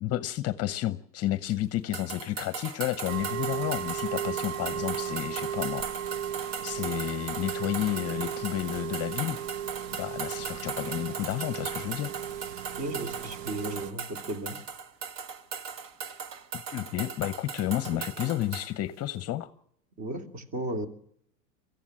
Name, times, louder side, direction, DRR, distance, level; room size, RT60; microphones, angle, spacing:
voice 1, 0.0-5.9 6.6-9.4 10.0-12.1 16.5-19.5, left 14 dB, 30° left, 13 dB, 0.8 m, -31 dB
sound 1, 1.9-18.7, right 6 dB, 50° right, 1.8 m, -38 dB
sound 2, 3.1-13.9, right 9 dB, 70° right, 0.8 m, -36 dB
voice 2, 12.8-14.6 17.9-18.0 20.0-20.9, right 1 dB, 35° right, 6 dB, 3.1 m, -35 dB
23.5 x 15.0 x 7.5 m, 0.72 s
supercardioid pair, 125°, 48 cm